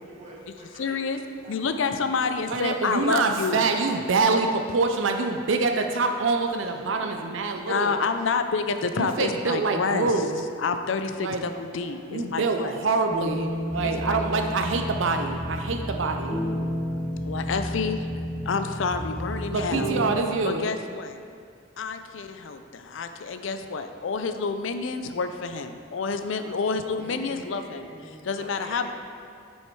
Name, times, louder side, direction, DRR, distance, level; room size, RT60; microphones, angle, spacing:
voice 1, 0.0-1.8 6.8-7.3 7.6-8.4 9.0-9.6 11.8-14.6 27.0-28.9, right 1 dB, 35° right, -5 dB, 1.9 m, -46 dB
voice 2, 0.8-1.2 1.5-3.7 7.7-10.1 10.6-12.8 13.8-14.5 17.2-18.1 18.5-19.9 20.4-21.2 21.8-27.9 28.2-28.9, left 4 dB, 75° left, 8 dB, 0.5 m, -29 dB
voice 3, 2.5-8.0 9.0-10.4 11.2-11.4 12.1-16.5 19.5-20.8, right 3 dB, 75° right, 5 dB, 0.5 m, -25 dB
sound 1, 13.1-20.1, equal, 15° left, 1.4 m, -31 dB
7.7 x 6.4 x 4.6 m, 2.3 s
head